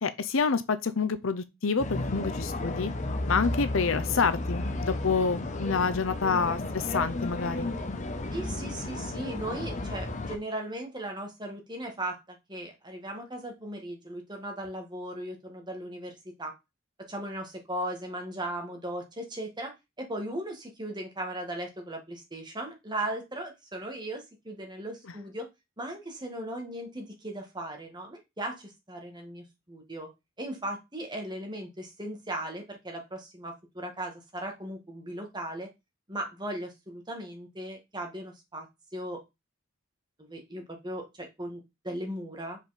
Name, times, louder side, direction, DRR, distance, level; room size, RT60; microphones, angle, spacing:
voice 1, 0.0-2.9 3.3-7.7, left 5 dB, 70° left, 0.7 m, -28 dB
sound 1, 1.8-10.4, left 2 dB, 35° left, 0.9 m, -33 dB
voice 2, 8.3-16.5 17.1-19.7 20.0-25.5 25.8-30.1 30.4-35.7 36.1-38.7 38.9-39.2 40.2-42.6, right 1 dB, 20° right, 1.7 m, -37 dB
5.6 x 5.0 x 4.2 m
head